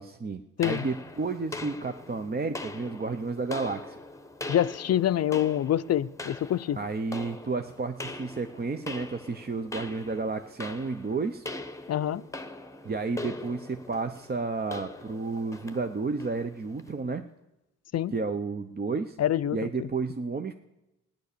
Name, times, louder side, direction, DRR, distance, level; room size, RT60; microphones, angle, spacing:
voice 1, 0.0-3.9 6.7-11.5 12.8-17.2 18.1-19.2 19.5-20.5, right 4 dB, 30° right, 0.7 m, -32 dB
sound 1, 0.6-17.0, left 2 dB, 10° left, 1.0 m, -42 dB
voice 2, 4.5-6.8 11.9-12.2 17.9-18.1 19.2-19.9, left 11 dB, 50° left, 0.5 m, -26 dB
16.0 x 10.5 x 6.8 m
cardioid pair, 85°, 32 cm